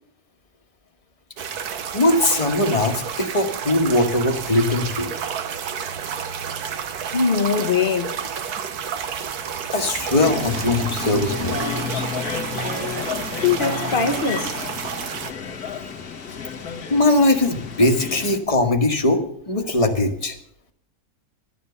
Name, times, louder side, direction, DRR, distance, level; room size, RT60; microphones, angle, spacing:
sound 1, 1.4-15.3, right 7 dB, 85° right, 1.5 m, -30 dB
voice 1, 1.9-5.1 9.7-12.1 16.9-20.4, left 2 dB, 25° left, 1.3 m, -20 dB
voice 2, 7.1-8.1 13.4-14.6, left 5 dB, 40° left, 1.0 m, -21 dB
sound 2, 10.1-18.4, left 6 dB, 85° left, 2.1 m, -31 dB
12.5 x 10.0 x 6.9 m
omnidirectional pair, 1.6 m